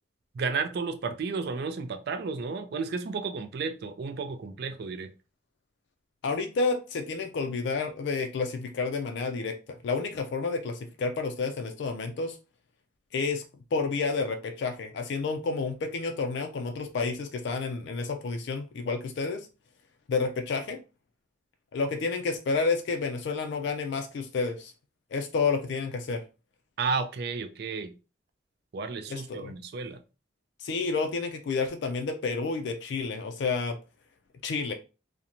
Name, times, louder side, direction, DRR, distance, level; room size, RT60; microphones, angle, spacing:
voice 1, 0.3-5.1 26.8-27.9 28.7-30.0, right 4 dB, 55° right, 7 dB, 0.3 m, -32 dB
voice 2, 6.2-12.4 13.1-13.4 13.7-19.5 20.1-20.8 21.7-24.7 25.1-26.2 29.1-29.5 30.6-33.8 34.4-34.7, left 4 dB, 60° left, 6 dB, 0.3 m, -30 dB
2.5 x 2.1 x 2.8 m, 0.32 s
head